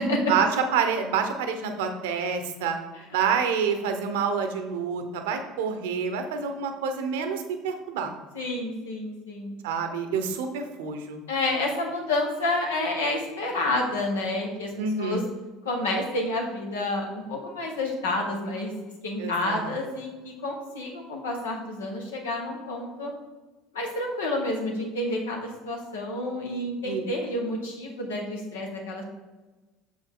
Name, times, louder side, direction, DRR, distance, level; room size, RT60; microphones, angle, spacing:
voice 1, 0.3-2.8 3.1-8.2 9.6-11.2 14.8-15.2 19.2-19.7 26.8-27.0, right 6 dB, 80° right, 6 dB, 0.9 m, -27 dB
voice 2, 8.3-9.5 11.3-14.7 15.0-15.2 15.6-18.7 19.0-23.1 23.7-29.0, left 2 dB, 90° left, 0 dB, 1.4 m, -29 dB
6.7 x 5.3 x 3.8 m, 1.2 s
hypercardioid pair, 75°, 0 cm